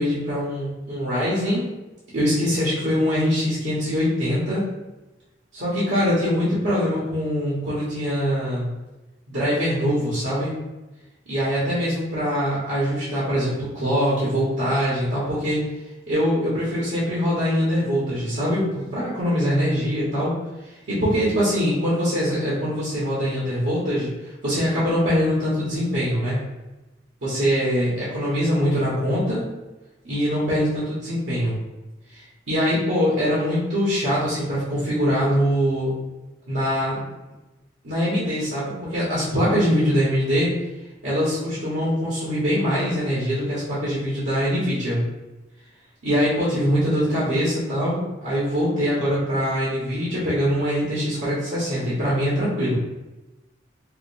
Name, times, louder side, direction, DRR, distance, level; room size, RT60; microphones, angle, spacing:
voice 1, 0.0-1.7 2.1-4.7 5.5-8.7 9.3-10.5 11.3-15.6 16.1-20.3 20.9-24.1 24.4-26.4 27.2-29.4 30.0-31.5 32.1-35.9 36.5-37.0 37.8-40.5 41.0-45.1 46.0-52.7, equal, 80° right, -9 dB, 1.1 m, -23 dB
4.9 x 2.1 x 2.6 m, 1.1 s
head